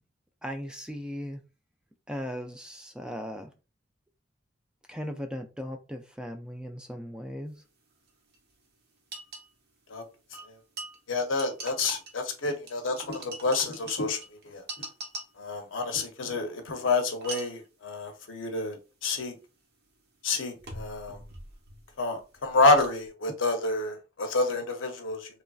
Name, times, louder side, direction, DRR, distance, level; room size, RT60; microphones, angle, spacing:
voice 1, 0.4-1.4 2.1-3.5 4.9-7.6, equal, 5° right, 0.3 m, -37 dB
sound 1, 8.1-8.2 8.3-8.4 9.1-9.5 10.3-12.3 12.7-15.5 17.1-17.7 19.1-19.2 20.6-21.9 22.2-23.1, right 2 dB, 55° right, 0.8 m, -42 dB
voice 2, 11.1-14.2 14.4-14.9 15.4-19.3 20.2-21.2 22.0-25.4, left 3 dB, 75° left, 0.7 m, -28 dB
3.1 x 2.5 x 2.3 m
head